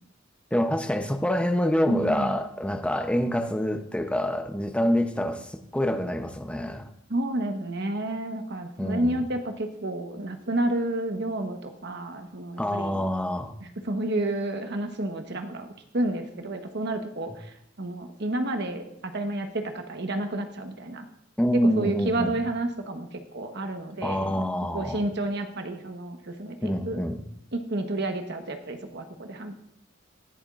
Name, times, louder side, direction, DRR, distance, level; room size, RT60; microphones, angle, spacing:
voice 1, 0.5-6.8 8.8-9.1 12.6-13.5 21.4-22.4 24.0-25.0 26.6-27.2, equal, 5° left, 6 dB, 0.7 m, -26 dB
voice 2, 1.9-2.4 7.1-13.0 13.6-15.7 15.9-21.1 21.5-24.5 24.7-27.0 27.5-29.6, right 1 dB, 60° right, 6 dB, 1.2 m, -30 dB
20.0 x 7.1 x 2.5 m, 0.77 s
head